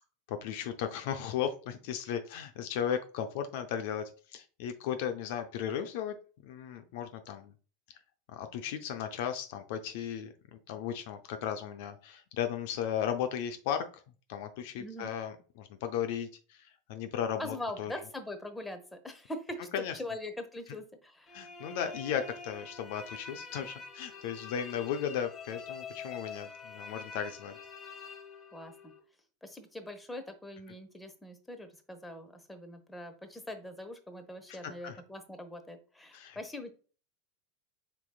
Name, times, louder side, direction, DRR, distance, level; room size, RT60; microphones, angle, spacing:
voice 1, 0.3-6.2 6.4-7.5 8.3-13.9 14.3-17.9 19.7-19.9 21.3-27.6 34.5-34.6 34.8-35.0 36.1-36.4, left 9 dB, 60° left, 7 dB, 0.5 m, -36 dB
voice 2, 14.8-15.1 17.4-21.3 28.5-28.9 29.4-36.7, left 1 dB, 5° left, 6 dB, 1.0 m, -42 dB
sound 1, 21.3-29.0, left 5 dB, 30° left, 1.3 m, -46 dB
5.3 x 4.4 x 2.3 m, 0.37 s
figure-of-eight pair, 85°, 0 cm